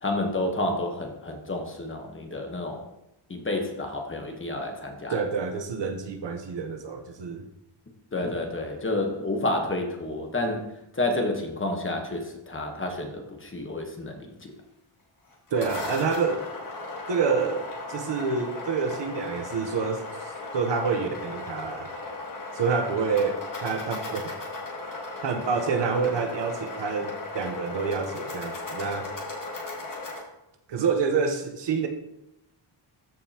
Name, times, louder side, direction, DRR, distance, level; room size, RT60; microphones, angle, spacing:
voice 1, 0.0-2.8 3.3-5.2 8.1-10.7 10.9-14.5, left 2 dB, 25° left, 3 dB, 1.1 m, -30 dB
voice 2, 5.1-7.5 15.5-16.5 17.1-20.2 20.5-21.9 22.5-24.4 25.2-29.1 30.7-31.9, right 5 dB, 60° right, 6 dB, 0.9 m, -27 dB
sound 1, 15.3-30.2, left 2 dB, 40° left, 1.8 m, -36 dB
13.5 x 5.3 x 2.9 m, 0.87 s
wide cardioid pair, 165°, 49 cm